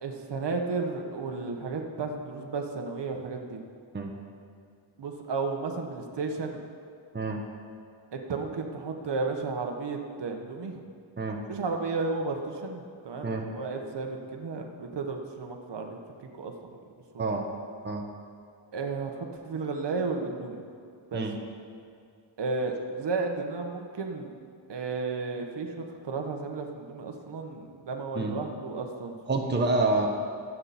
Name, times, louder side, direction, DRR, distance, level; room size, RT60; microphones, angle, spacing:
voice 1, 0.0-3.6 5.0-6.6 8.1-10.7 11.5-16.7 17.1-17.3 18.7-20.6 21.1-21.2 22.4-24.3 24.7-29.2 29.4-29.6, right 4 dB, 55° right, 3 dB, 1.5 m, -33 dB
voice 2, 29.3-30.1, right 3 dB, 20° right, 1 dB, 1.2 m, -27 dB
23.0 x 8.5 x 4.4 m, 2.4 s
wide cardioid pair, 135°, 48 cm